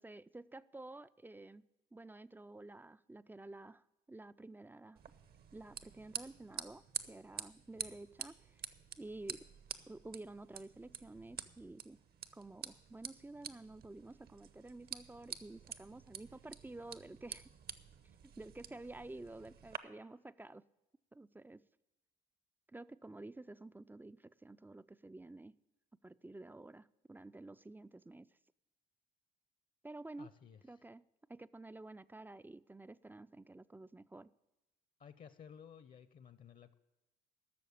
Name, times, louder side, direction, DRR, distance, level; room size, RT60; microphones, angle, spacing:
voice 1, 0.0-1.6 1.9-5.0 5.5-8.6 9.0-9.5 9.9-12.0 12.3-17.5 18.2-20.7 21.1-21.7 22.7-25.6 26.0-28.3 29.8-30.3 30.6-31.0 31.3-34.3, right 2 dB, 10° right, 16 dB, 0.3 m, -51 dB
sound 1, 5.0-19.8, right 7 dB, 50° right, 0.8 m, -49 dB
voice 2, 30.2-30.6 35.0-36.7, left 7 dB, 45° left, 14 dB, 0.7 m, -55 dB
13.0 x 6.6 x 8.5 m, 0.98 s
supercardioid pair, 65°, 20 cm